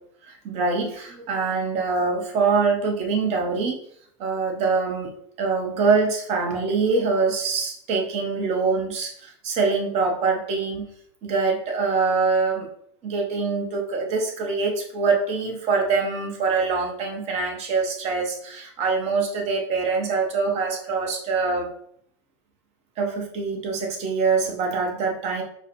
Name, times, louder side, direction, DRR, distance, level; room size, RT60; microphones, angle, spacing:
voice 1, 0.2-3.8 4.2-5.1 5.4-10.8 11.2-12.7 13.0-21.7 23.0-25.4, right 4 dB, 45° right, 2 dB, 1.0 m, -24 dB
4.5 x 2.2 x 3.0 m, 0.66 s
hypercardioid pair, 105°, 16 cm